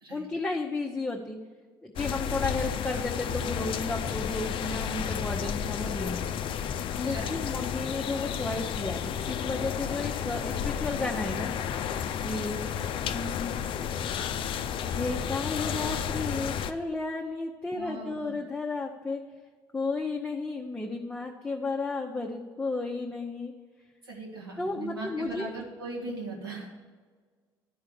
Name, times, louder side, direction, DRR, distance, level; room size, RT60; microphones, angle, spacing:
voice 1, 0.1-1.4 1.8-6.2 7.0-11.5 12.2-12.6 13.1-13.5 14.9-19.2 19.7-23.5 24.6-25.5, left 3 dB, 10° left, 0 dB, 0.8 m, -33 dB
sound 1, 2.0-16.7, left 8 dB, 45° left, 0.5 m, -32 dB
voice 2, 17.8-18.3 24.1-26.7, right 2 dB, 80° right, -3 dB, 1.7 m, -39 dB
11.0 x 4.6 x 6.8 m, 1.5 s
figure-of-eight pair, 55°, 12 cm